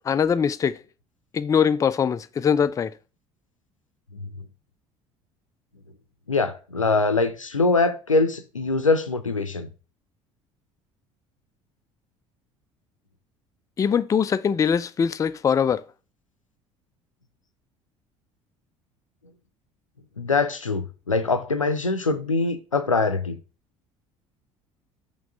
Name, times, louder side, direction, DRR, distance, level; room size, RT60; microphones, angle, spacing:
voice 1, 0.0-0.8 1.3-2.9 13.8-15.8, left 7 dB, 20° left, 0.4 m, -22 dB
voice 2, 6.3-9.7 20.2-23.4, left 3 dB, 90° left, 0.5 m, -23 dB
5.8 x 3.1 x 5.2 m
figure-of-eight pair, 60°, 16 cm